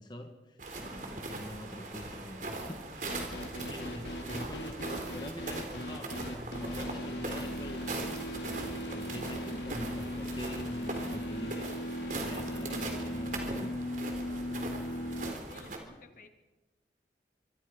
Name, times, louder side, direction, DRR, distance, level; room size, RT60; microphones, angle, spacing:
voice 1, 0.0-8.0 8.4-11.7 12.1-13.7, equal, 25° left, 4 dB, 1.7 m, -45 dB
sound 1, 0.6-15.8, right 2 dB, 45° right, 3.9 m, -40 dB
sound 2, 3.1-15.3, left 1 dB, 75° left, 2.9 m, -38 dB
voice 2, 15.0-16.3, left 3 dB, 50° left, 7 dB, 2.0 m, -55 dB
25.5 x 23.5 x 5.4 m, 1.1 s
head